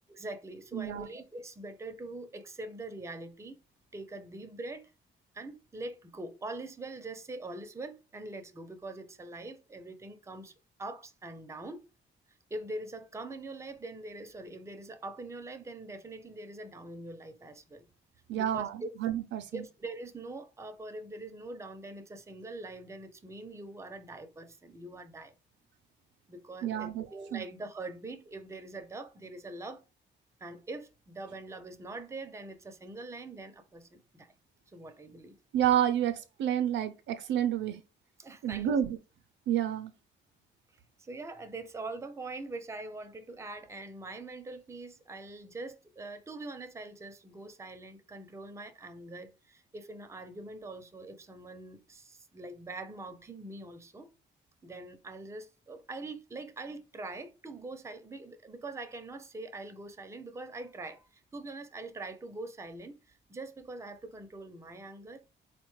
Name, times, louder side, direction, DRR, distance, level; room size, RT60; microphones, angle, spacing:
voice 1, 0.1-3.6 3.9-4.9 5.3-10.5 10.8-11.9 12.5-17.8 18.3-18.9 19.5-25.3 26.3-29.8 30.4-34.3 34.7-35.4 38.2-38.8 41.0-54.1 54.6-65.3, right 2 dB, 15° right, 0.5 m, -43 dB
voice 2, 0.7-1.1 18.3-19.6 26.6-27.1 27.3-27.4 35.5-37.8 38.4-39.0 39.5-39.9, right 10 dB, 65° right, 0.4 m, -29 dB
3.8 x 2.1 x 3.0 m
cardioid pair, 90°, 20 cm